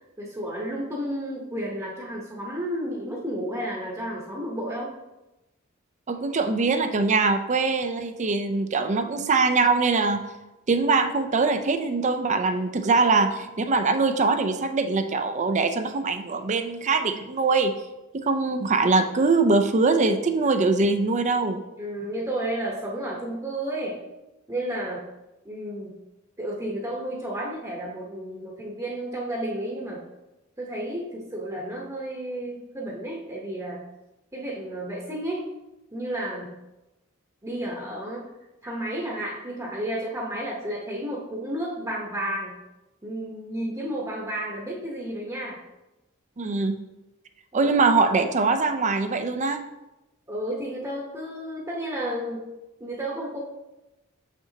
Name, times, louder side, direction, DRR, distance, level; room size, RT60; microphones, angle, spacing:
voice 1, 0.2-4.9 21.8-24.0 24.5-25.0 25.4-25.9 26.4-30.0 30.6-33.8 34.3-35.5 35.9-36.5 37.4-38.3 38.6-42.5 43.0-45.6 47.5-47.7 50.3-52.5 52.8-53.4, right 1 dB, 15° right, -3 dB, 0.9 m, -32 dB
voice 2, 6.1-10.2 10.7-17.7 18.1-21.6 46.4-46.8 47.5-49.6, right 3 dB, 35° right, 8 dB, 0.5 m, -22 dB
6.8 x 5.8 x 2.8 m, 0.99 s
head